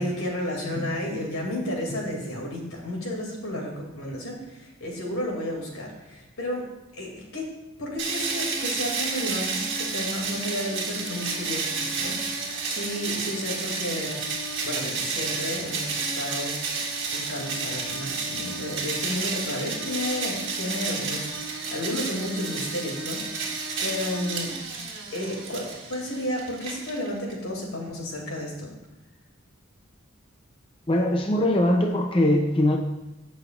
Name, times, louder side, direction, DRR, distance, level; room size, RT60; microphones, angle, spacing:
voice 1, 0.0-7.5 7.8-14.2 14.6-16.5 17.1-21.3 21.7-24.5 25.1-28.7, left 1 dB, 85° left, -1 dB, 2.6 m, -32 dB
sound 1, 8.0-27.3, right 4 dB, 55° right, 1.8 m, -31 dB
voice 2, 30.9-32.8, left 1 dB, 25° left, 3 dB, 0.6 m, -22 dB
16.0 x 6.3 x 2.5 m, 0.99 s
head